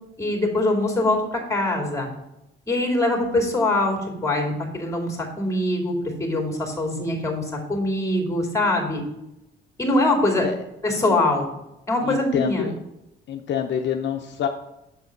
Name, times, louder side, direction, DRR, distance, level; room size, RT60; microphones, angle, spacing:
voice 1, 0.2-2.1 2.7-9.0 9.8-10.5 10.8-11.5 11.9-12.7, left 2 dB, 15° left, 1 dB, 2.4 m, -23 dB
voice 2, 12.0-12.7 13.3-14.5, left 9 dB, 65° left, 4 dB, 0.7 m, -26 dB
7.3 x 4.0 x 5.8 m, 0.88 s
cardioid pair, 90°, 20 cm